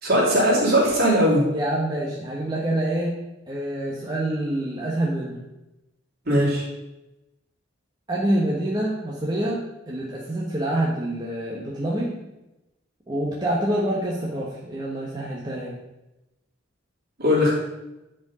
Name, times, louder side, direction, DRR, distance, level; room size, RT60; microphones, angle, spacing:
voice 1, 0.0-1.5 6.2-6.6 17.2-17.5, equal, 50° right, -5 dB, 3.1 m, -19 dB
voice 2, 1.5-3.1 3.5-5.4 8.1-9.6 9.9-12.2 13.1-15.7, right 1 dB, 20° right, -5 dB, 1.2 m, -26 dB
10.0 x 4.7 x 5.0 m, 0.96 s
head